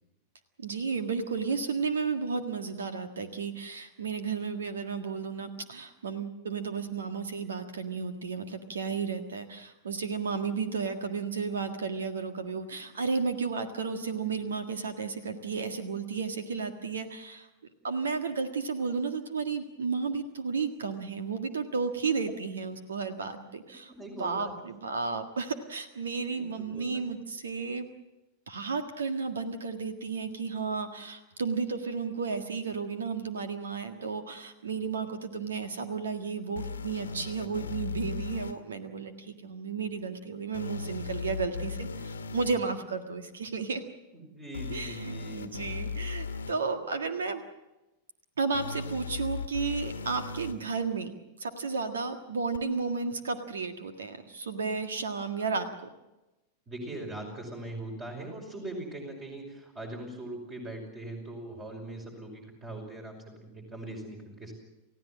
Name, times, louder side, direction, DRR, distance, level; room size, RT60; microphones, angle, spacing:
voice 1, 0.6-17.5 17.8-23.9 24.2-27.9 28.5-43.8 44.7-47.4 48.4-51.1 51.4-55.7, right 5 dB, 70° right, 7 dB, 1.7 m, -33 dB
voice 2, 23.9-24.5 26.3-27.0 44.1-45.5 56.7-64.5, right 1 dB, 25° right, 2 dB, 5.7 m, -41 dB
sound 1, 36.6-38.5 40.5-42.5 44.5-46.5 48.5-50.5 52.5-52.6, left 4 dB, 70° left, 1.3 m, -37 dB
29.5 x 16.0 x 7.5 m, 1.0 s
figure-of-eight pair, 90°, 0 cm